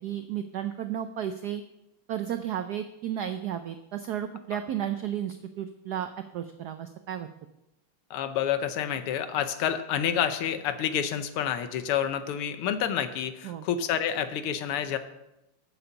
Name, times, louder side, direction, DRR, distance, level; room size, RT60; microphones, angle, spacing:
voice 1, 0.0-1.6 2.1-7.3 13.4-13.6, right 10 dB, 90° right, 9 dB, 0.8 m, -33 dB
voice 2, 8.1-15.0, left 9 dB, 85° left, 10 dB, 1.7 m, -28 dB
8.8 x 6.9 x 7.0 m, 0.90 s
omnidirectional pair, 2.4 m